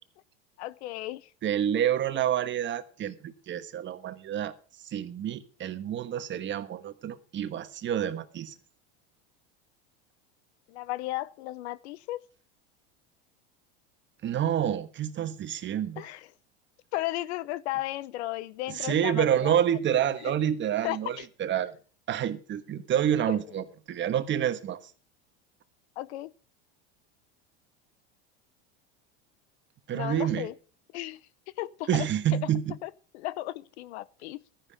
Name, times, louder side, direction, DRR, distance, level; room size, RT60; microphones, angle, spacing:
voice 1, 0.6-1.3 10.7-12.2 16.0-16.3 16.9-19.6 20.2-20.3 20.8-21.3 23.3-23.4 26.0-26.3 29.9-30.5 30.9-31.2 31.6-32.1 32.3-32.4 32.8-34.4, left 16 dB, 80° left, 0.7 m, -35 dB
voice 2, 1.4-4.6 4.8-8.5 14.2-16.0 18.7-21.7 22.1-24.8 29.9-30.5 31.9-32.8, right 10 dB, 35° right, 1.3 m, -28 dB
13.5 x 10.0 x 5.1 m
supercardioid pair, 115°, 33 cm